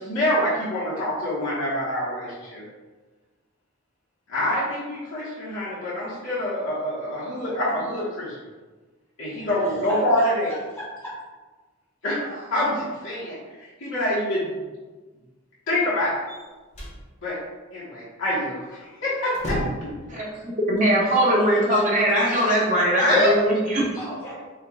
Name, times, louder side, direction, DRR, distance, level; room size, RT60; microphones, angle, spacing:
voice 1, 0.0-2.6 4.3-8.4 9.2-10.5 12.0-14.6 15.7-16.1 17.2-17.4 17.7-19.9 21.2-21.4 21.7-21.8 22.2-22.4 23.1-23.3, left 1 dB, 65° left, -9 dB, 1.1 m, -26 dB
voice 2, 9.4-11.1 24.0-24.3, equal, 5° left, -9 dB, 0.9 m, -37 dB
sound 1, 16.3-17.0 18.7-18.8 19.2-20.0, equal, 35° left, 1.0 m, -32 dB
voice 3, 20.1-23.8, equal, 35° right, -5 dB, 1.1 m, -21 dB
4.5 x 2.3 x 3.6 m, 1.3 s
head